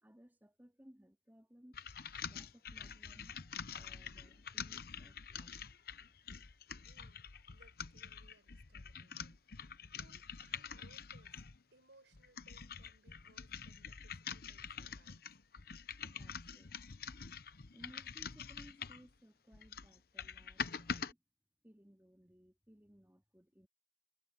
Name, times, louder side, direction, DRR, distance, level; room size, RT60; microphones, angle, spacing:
voice 1, 0.0-1.8 2.3-3.3 3.7-5.6 16.0-16.7 17.7-21.2 21.6-23.7, equal, 10° right, 2.6 m, -62 dB
sound 1, 1.7-11.6 12.1-19.1 19.5-21.1, left 7 dB, 55° left, 0.9 m, -46 dB
voice 2, 6.8-11.4 11.7-15.4, right 2 dB, 85° right, 6.1 m, -68 dB
head